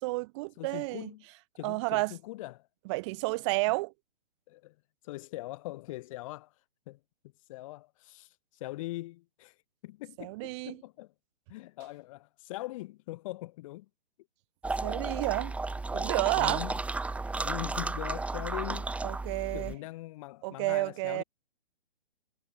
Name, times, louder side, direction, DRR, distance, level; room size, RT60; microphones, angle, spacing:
voice 1, 0.0-1.1 1.6-2.1 2.9-3.9 10.2-10.8 14.8-15.5 15.9-16.6 19.0-19.7 20.4-21.2, right 25 dB, 30° right, 3.5 m, -31 dB
voice 2, 0.6-1.2 1.6-2.7 4.5-4.8 5.0-6.5 6.9-7.0 7.5-9.5 9.8-11.1 11.5-13.9 16.3-16.8 17.4-18.9 19.5-21.2, left 18 dB, 30° left, 4.0 m, -41 dB
sound 1, 14.6-19.7, right 3 dB, 5° right, 3.5 m, -33 dB
figure-of-eight pair, 125°, 31 cm